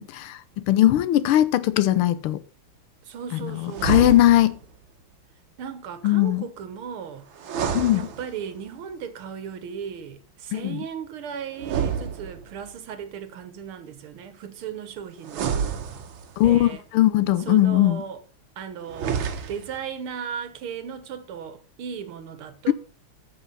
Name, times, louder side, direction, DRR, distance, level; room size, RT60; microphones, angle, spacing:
voice 1, 0.0-2.4 3.4-4.6 6.0-6.5 7.7-8.1 10.5-10.8 16.4-18.0 22.7-22.8, left 14 dB, 85° left, 1.6 m, -20 dB
voice 2, 3.0-4.2 5.6-7.3 7.9-15.6 16.4-16.8 17.5-18.2 18.6-22.7, right 8 dB, 85° right, 2.0 m, -36 dB
sound 1, 3.7-4.7 7.4-8.7 11.6-12.8 15.2-16.5 18.8-19.8, right 7 dB, 70° right, 1.8 m, -29 dB
14.0 x 4.9 x 5.4 m
omnidirectional pair, 2.3 m